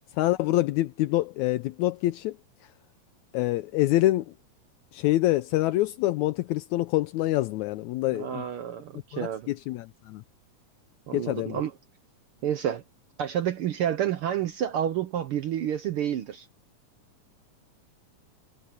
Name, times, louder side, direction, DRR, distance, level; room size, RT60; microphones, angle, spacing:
voice 1, 0.1-2.4 3.3-4.3 4.9-8.4 9.1-10.2 11.1-11.6, left 16 dB, 80° left, 1.9 m, -26 dB
voice 2, 8.1-9.5 11.1-11.7 12.4-12.8 13.2-16.5, right 10 dB, 75° right, 1.2 m, -29 dB
omnidirectional pair, 3.5 m